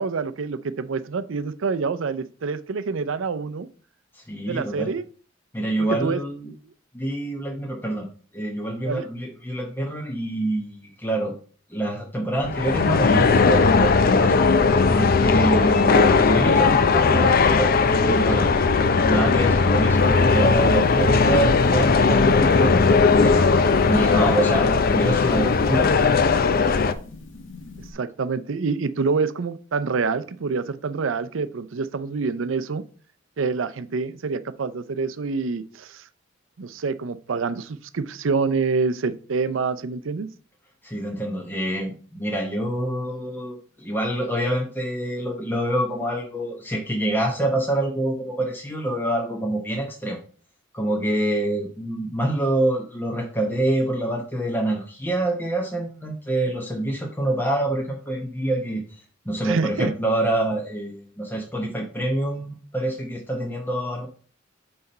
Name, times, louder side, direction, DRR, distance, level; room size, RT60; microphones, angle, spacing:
voice 1, 0.0-3.7 4.5-5.0 6.0-6.2 8.8-9.1 26.7-26.9 27.9-32.8 33.4-36.0 36.6-40.3 59.4-59.9, right 4 dB, 80° right, 12 dB, 0.5 m, -26 dB
voice 2, 4.1-4.9 5.5-6.5 6.9-8.1 8.3-11.4 11.7-14.4 14.9-18.5 18.9-23.5 23.8-25.9 40.8-50.2 50.7-64.1, right 1 dB, 10° left, -1 dB, 0.9 m, -26 dB
sound 1, 12.4-26.9, left 4 dB, 50° left, 0.5 m, -18 dB
sound 2, 19.9-27.9, left 3 dB, 70° left, 1.1 m, -42 dB
5.8 x 4.3 x 5.3 m, 0.42 s
head